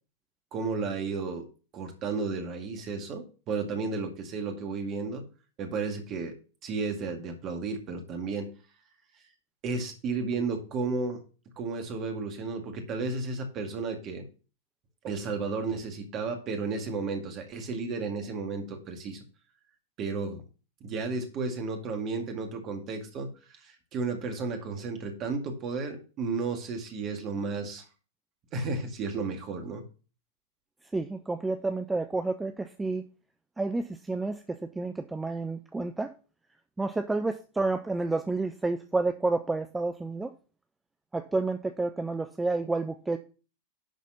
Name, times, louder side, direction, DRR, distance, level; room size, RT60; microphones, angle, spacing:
voice 1, 0.5-1.5 1.7-5.2 5.6-6.4 6.6-8.5 9.6-11.2 11.6-14.3 15.0-19.2 20.0-20.4 20.8-27.8 28.5-29.8, right 4 dB, 35° right, 5 dB, 2.1 m, -33 dB
voice 2, 30.9-33.0 33.6-36.1 36.8-40.3 41.1-43.2, right 3 dB, 10° right, 8 dB, 0.6 m, -30 dB
11.0 x 4.1 x 5.6 m, 0.36 s
figure-of-eight pair, 90°, 0 cm